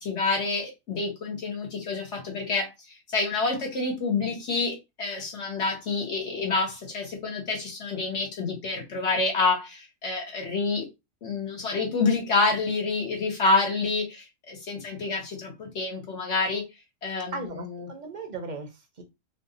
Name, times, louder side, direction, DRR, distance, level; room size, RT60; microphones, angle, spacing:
voice 1, 0.0-10.9 11.2-16.6 17.0-17.9, left 3 dB, 65° left, 1.3 m, -28 dB
voice 2, 17.3-19.0, right 3 dB, 45° right, 0.7 m, -37 dB
3.1 x 2.0 x 3.7 m
omnidirectional pair, 1.3 m